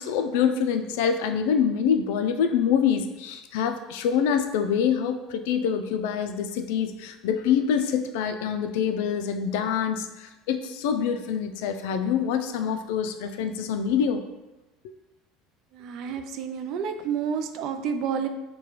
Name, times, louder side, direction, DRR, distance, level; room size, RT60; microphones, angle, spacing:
voice 1, 0.0-14.2, left 7 dB, 80° left, 8 dB, 0.3 m, -25 dB
voice 2, 15.8-18.3, right 7 dB, 50° right, 7 dB, 0.3 m, -29 dB
4.8 x 2.2 x 3.0 m, 1.0 s
cardioid pair, 155°, 0 cm